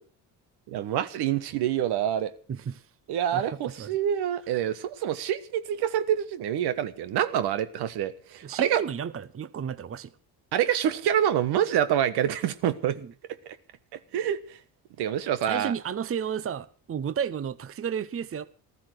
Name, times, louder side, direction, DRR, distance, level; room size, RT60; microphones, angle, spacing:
voice 1, 0.7-2.3 3.1-8.8 10.5-13.0 13.9-14.6 15.0-15.7, right 10 dB, 80° right, 1.4 m, -26 dB
voice 2, 2.5-2.8 3.3-4.0 8.4-10.1 13.0-13.1 15.5-18.4, right 7 dB, 35° right, 0.8 m, -32 dB
15.0 x 13.0 x 6.4 m
cardioid pair, 85°, 39 cm